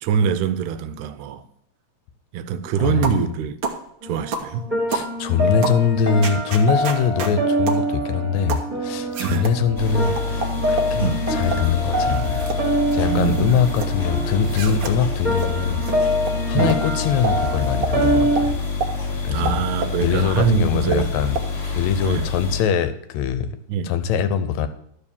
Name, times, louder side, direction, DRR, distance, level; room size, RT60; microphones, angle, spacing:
voice 1, 0.0-1.4 2.3-3.6 4.0-4.6 5.4-5.8 9.2-9.5 11.0-11.2 13.0-13.6 14.2-14.3 16.5-16.8 19.3-21.1 22.0-22.3 23.7-23.9, right 7 dB, 85° right, 2.1 m, -24 dB
voice 2, 2.8-3.1 4.9-12.5 12.9-15.8 16.5-18.6 19.2-19.6 20.0-21.4 21.7-23.6 23.8-24.7, left 7 dB, 75° left, 1.9 m, -22 dB
sound 1, 3.0-3.2 3.6-3.8 4.3-4.5 4.9-5.1 5.6-5.8 6.2-7.3 7.7-7.8 8.5-8.7 9.1-9.6 10.2-10.9 11.4-11.7 12.1-12.6 12.9-13.9 14.4-14.9 15.4-15.5 15.8-15.9 16.2-16.3 16.7-16.8 17.2-17.4 17.8-17.9 18.4-18.5 18.8-18.9 19.4-20.0 20.4-20.5 20.9-21.0 21.3-21.5, right 4 dB, 60° right, 1.3 m, -28 dB
sound 2, 4.0-18.5, right 1 dB, 20° right, 1.5 m, -25 dB
sound 3, 9.8-22.6, left 4 dB, 25° left, 1.8 m, -27 dB
12.0 x 4.7 x 7.1 m
omnidirectional pair, 3.4 m